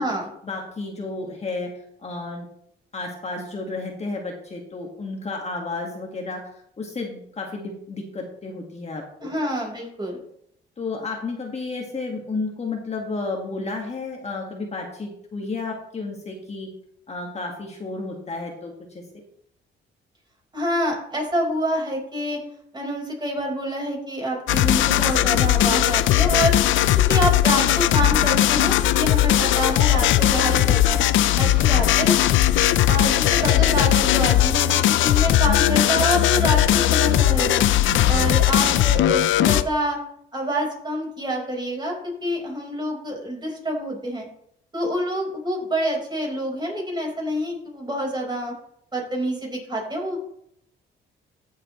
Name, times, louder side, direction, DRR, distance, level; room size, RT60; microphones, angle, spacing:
voice 1, 0.4-1.7 2.0-2.5 2.9-9.3 10.8-16.7 17.1-19.0 31.2-31.9 38.0-38.8, left 3 dB, 35° left, 1 dB, 1.8 m, -32 dB
voice 2, 9.2-10.2 20.5-22.4 22.7-26.6 27.1-31.0 31.4-32.1 32.4-32.5 32.9-37.6 38.1-40.0 40.3-41.9 42.2-44.3 44.7-48.5 48.9-50.2, equal, 20° right, 0 dB, 4.7 m, -27 dB
sound 1, 24.5-39.6, left 12 dB, 75° left, 0.5 m, -18 dB
14.0 x 7.4 x 3.2 m, 0.71 s
cardioid pair, 90°, 20 cm